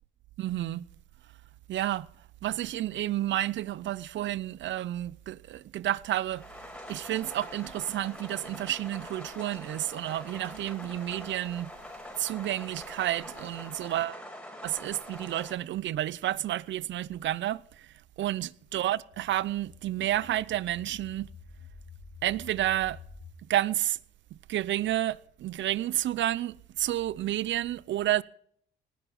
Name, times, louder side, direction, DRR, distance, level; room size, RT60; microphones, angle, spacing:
voice 1, 0.4-0.9 1.7-2.1 2.4-6.5 6.9-11.7 12.2-14.2 14.6-17.9 18.2-21.3 22.2-23.0 23.5-24.0 24.5-28.2, right 13 dB, 70° right, 0.7 m, -30 dB
sound 1, 6.3-15.5, equal, 5° left, 4.6 m, -44 dB
sound 2, 18.6-23.3, left 4 dB, 60° left, 4.5 m, -50 dB
19.0 x 11.0 x 5.4 m
cardioid pair, 90°, 20 cm